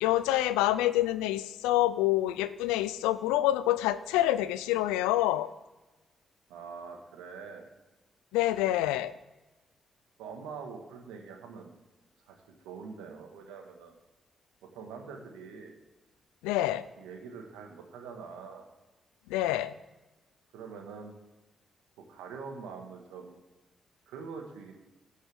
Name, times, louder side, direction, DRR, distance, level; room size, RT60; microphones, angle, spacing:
voice 1, 0.0-5.5 8.3-9.1 16.4-16.8 19.3-19.7, left 14 dB, 90° left, 15 dB, 0.4 m, -27 dB
voice 2, 6.5-7.6 10.2-11.7 12.2-12.4 12.6-13.9 14.6-15.7 17.0-18.7 20.5-21.2 22.0-23.4 24.1-24.7, right 5 dB, 85° right, 3 dB, 1.5 m, -44 dB
17.0 x 6.5 x 3.5 m, 1.1 s
hypercardioid pair, 45°, 0 cm